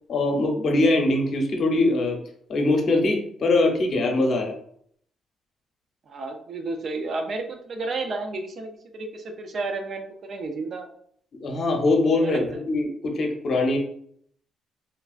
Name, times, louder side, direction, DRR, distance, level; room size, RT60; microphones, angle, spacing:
voice 1, 0.1-2.2 2.5-4.5 11.4-13.8, left 2 dB, 55° left, 2 dB, 0.7 m, -22 dB
voice 2, 6.1-10.9 12.2-12.4, right 3 dB, 55° right, 5 dB, 0.5 m, -32 dB
3.2 x 2.3 x 2.4 m, 0.65 s
cardioid pair, 90°, 0 cm